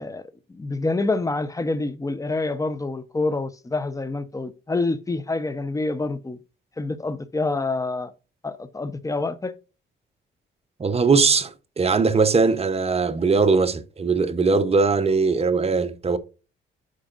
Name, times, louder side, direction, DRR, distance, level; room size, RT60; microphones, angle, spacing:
voice 1, 0.0-6.4 6.8-8.1 8.4-9.5, left 3 dB, 15° left, 0.8 m, -27 dB
voice 2, 10.8-16.2, right 4 dB, 30° right, 0.9 m, -20 dB
11.5 x 4.9 x 2.5 m
cardioid pair, 90°, 20 cm